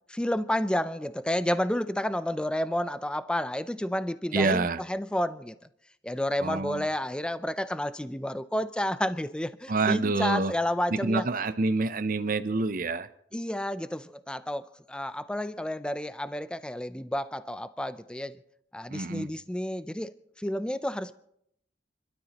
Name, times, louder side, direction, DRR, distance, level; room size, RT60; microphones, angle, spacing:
voice 1, 0.1-5.5 6.0-11.2 13.3-18.4 18.7-21.1, left 1 dB, 5° left, 0.5 m, -30 dB
voice 2, 4.3-4.8 6.4-6.9 9.7-10.5 10.9-13.1 18.9-19.3, right 3 dB, 50° right, 0.7 m, -27 dB
30.0 x 12.5 x 3.0 m
head